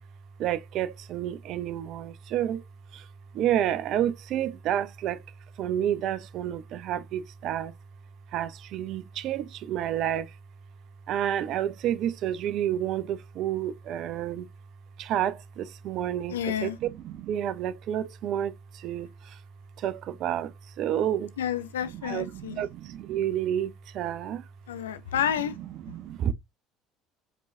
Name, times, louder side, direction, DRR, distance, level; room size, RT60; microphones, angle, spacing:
voice 1, 0.4-2.6 2.9-3.1 3.3-5.2 5.6-7.7 8.3-10.3 11.1-14.5 15.0-19.4 19.8-21.3 21.9-24.4 25.6-26.3, right 11 dB, 50° right, 0.5 m, -30 dB
voice 2, 16.3-16.8 21.4-22.6 24.7-25.6, left 9 dB, 75° left, 0.4 m, -30 dB
5.1 x 3.2 x 2.6 m
figure-of-eight pair, 60°, 0 cm